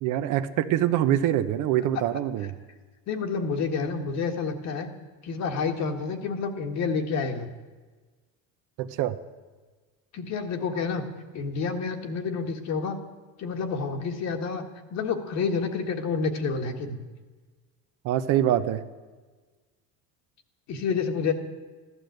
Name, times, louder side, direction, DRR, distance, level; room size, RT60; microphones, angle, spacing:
voice 1, 0.0-2.5 8.8-9.2 18.0-18.8, right 11 dB, 55° right, 10 dB, 0.9 m, -24 dB
voice 2, 3.1-4.9 5.2-7.5 10.1-11.0 11.3-13.0 13.4-14.6 14.9-17.0 20.7-21.3, left 5 dB, 45° left, 5 dB, 1.7 m, -29 dB
14.5 x 12.5 x 7.9 m, 1.4 s
cardioid pair, 145°, 36 cm